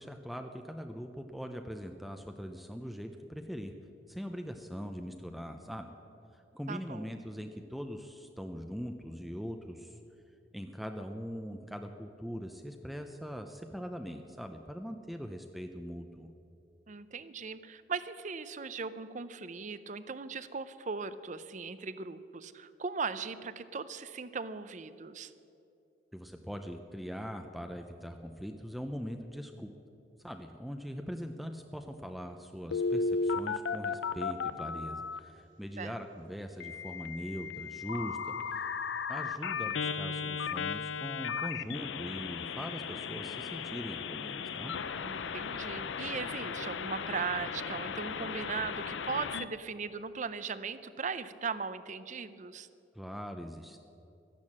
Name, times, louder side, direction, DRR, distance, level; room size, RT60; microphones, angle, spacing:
voice 1, 0.0-3.7 4.1-5.9 6.3-10.0 10.5-16.3 26.1-29.7 30.2-38.7 39.1-44.7 52.9-53.8, equal, ahead, 5 dB, 0.5 m, -41 dB
voice 2, 6.7-7.1 16.9-25.3 35.8-36.0 45.0-52.7, right 5 dB, 45° right, 14 dB, 0.6 m, -38 dB
Telephone, 32.7-35.2 36.6-49.4, left 5 dB, 90° left, 0.6 m, -36 dB
14.0 x 10.5 x 7.4 m, 2.8 s
head